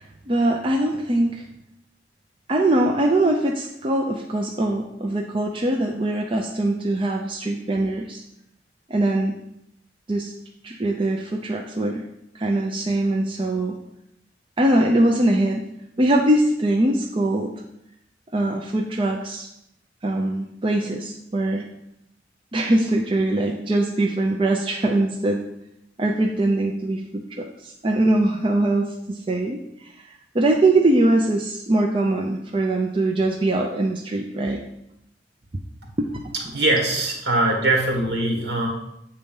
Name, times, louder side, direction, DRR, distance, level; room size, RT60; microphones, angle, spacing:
voice 1, 0.0-1.5 2.5-8.2 8.9-9.4 10.1-10.3 10.6-12.0 12.3-13.8 14.6-15.7 16.0-17.5 18.3-19.5 20.0-21.7 22.5-25.4 26.0-34.6 36.0-36.3, right 1 dB, 30° right, 1 dB, 0.5 m, -22 dB
voice 2, 36.3-38.7, right 2 dB, 65° right, 1 dB, 1.7 m, -22 dB
7.8 x 4.1 x 5.4 m, 0.81 s
head